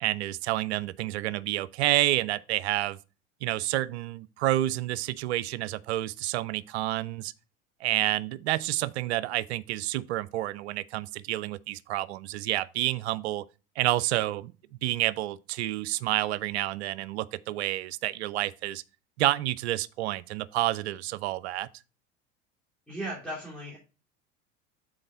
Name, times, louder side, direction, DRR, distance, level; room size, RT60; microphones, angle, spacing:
voice 1, 0.0-3.0 3.4-7.3 7.8-13.5 13.8-14.5 14.8-18.8 19.2-21.7, right 15 dB, 60° right, 0.5 m, -29 dB
voice 2, 22.9-23.8, right 1 dB, 5° left, 3.0 m, -36 dB
6.9 x 4.2 x 5.1 m
figure-of-eight pair, 80°, 37 cm